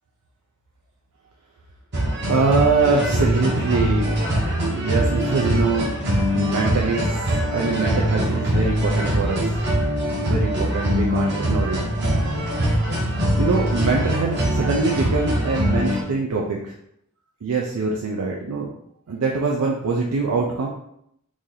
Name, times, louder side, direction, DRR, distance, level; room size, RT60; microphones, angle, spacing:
sound 1, 1.9-16.0, equal, 50° right, 0.9 m, -22 dB
voice 1, 2.3-4.2 4.7-5.9 6.3-7.2 7.5-9.6 10.2-11.8 13.4-16.7 17.4-18.7 19.1-20.7, right 4 dB, 90° right, -1 dB, 0.5 m, -23 dB
3.1 x 2.7 x 3.8 m, 0.75 s
head